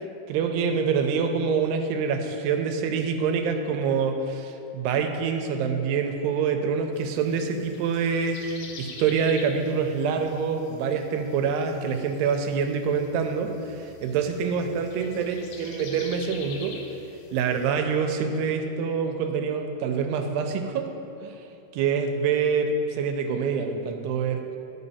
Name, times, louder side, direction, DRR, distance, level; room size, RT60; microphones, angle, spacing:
voice 1, 0.3-16.8 17.3-20.9 21.2-21.4 21.7-24.4, right 6 dB, 85° right, 5 dB, 2.7 m, -26 dB
sound 1, 6.9-17.7, left 4 dB, 80° left, 2.1 m, -46 dB
11.5 x 5.7 x 4.1 m, 2.9 s
omnidirectional pair, 4.7 m